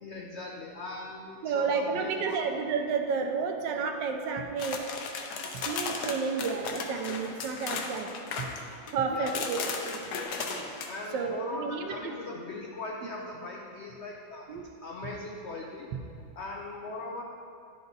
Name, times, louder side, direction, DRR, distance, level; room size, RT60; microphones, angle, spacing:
voice 1, 0.0-2.4 8.6-8.7 9.1-9.5 10.9-15.9 16.4-17.2, left 2 dB, 85° left, 0 dB, 0.6 m, -40 dB
voice 2, 1.4-4.8 5.5-8.1 8.4-8.5 8.9-10.3 11.1-12.1 14.5-14.7, right 5 dB, 75° right, 4 dB, 1.3 m, -31 dB
sound 1, 4.6-8.9 9.3-10.9, left 4 dB, 70° left, 1.2 m, -35 dB
10.5 x 5.2 x 3.9 m, 2.4 s
omnidirectional pair, 1.9 m